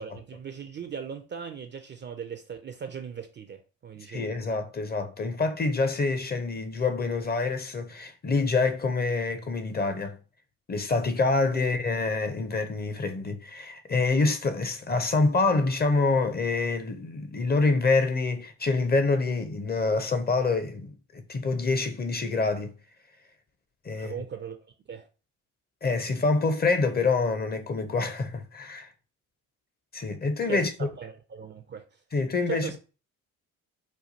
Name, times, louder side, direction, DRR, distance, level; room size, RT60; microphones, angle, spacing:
voice 1, 0.0-4.3 11.5-11.6 23.9-25.1 30.5-31.8 32.5-32.8, right 7 dB, 30° right, 0.4 m, -39 dB
voice 2, 4.1-10.2 10.7-22.7 23.8-24.2 25.8-28.9 29.9-30.7 32.1-32.7, left 3 dB, 25° left, 0.5 m, -26 dB
4.5 x 2.3 x 2.6 m
hypercardioid pair, 50°, 42 cm